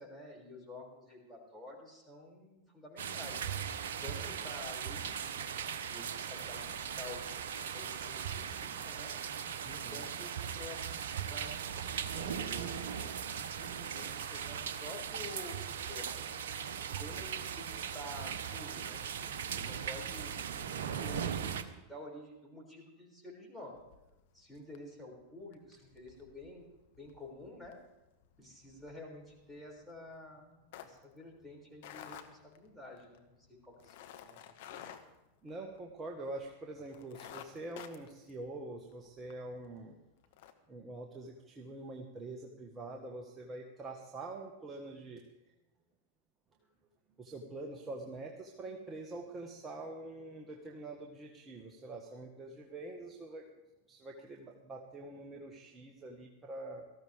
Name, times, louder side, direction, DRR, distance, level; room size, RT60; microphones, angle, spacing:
voice 1, 0.0-3.6 4.0-7.2 7.7-9.1 9.9-10.9 11.3-11.6 11.9-12.9 13.2-16.3 16.7-20.5 20.8-23.8 24.3-27.8 28.4-33.9 34.2-34.9, left 1 dB, ahead, -3 dB, 6.2 m, -50 dB
sound 1, 3.0-21.6, right 8 dB, 65° right, 0.9 m, -39 dB
voice 2, 9.6-10.0 16.9-17.0 35.4-40.0 40.7-45.2 47.2-53.4 53.9-56.8, right 2 dB, 25° right, 1 dB, 1.6 m, -45 dB
sound 2, 23.7-24.4 24.7-25.0 25.4-36.1 36.4-36.5 36.9-39.4 39.8-39.9 40.2-40.5, left 10 dB, 60° left, 1.2 m, -52 dB
18.5 x 14.5 x 3.5 m, 1.0 s
figure-of-eight pair, 90°, 0 cm